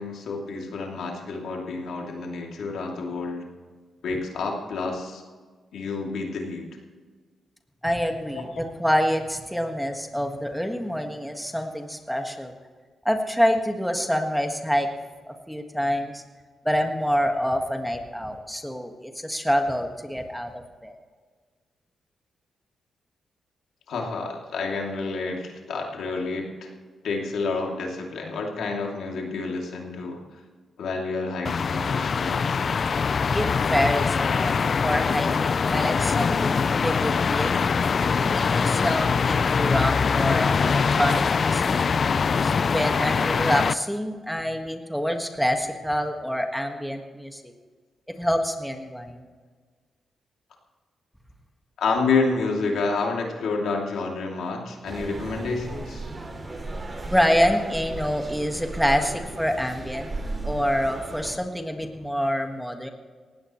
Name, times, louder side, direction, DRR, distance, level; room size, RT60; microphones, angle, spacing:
voice 1, 0.0-3.4 4.0-5.2 5.7-6.7 8.3-8.5 23.9-26.7 27.0-30.2 30.8-32.7 34.3-34.4 43.6-43.7 51.8-56.0, left 4 dB, 80° left, 0 dB, 2.8 m, -29 dB
voice 2, 7.8-12.5 13.1-14.9 15.2-16.2 16.6-21.0 33.3-34.5 34.8-37.5 38.1-41.8 42.4-47.5 48.2-49.2 57.1-60.1 60.4-62.9, equal, ahead, 4 dB, 1.7 m, -26 dB
sound 1, 31.4-43.7, left 5 dB, 50° left, 0.4 m, -23 dB
sound 2, 54.8-61.3, right 2 dB, 40° right, 3.2 m, -35 dB
18.5 x 16.0 x 3.2 m, 1.5 s
cardioid pair, 80°, 0 cm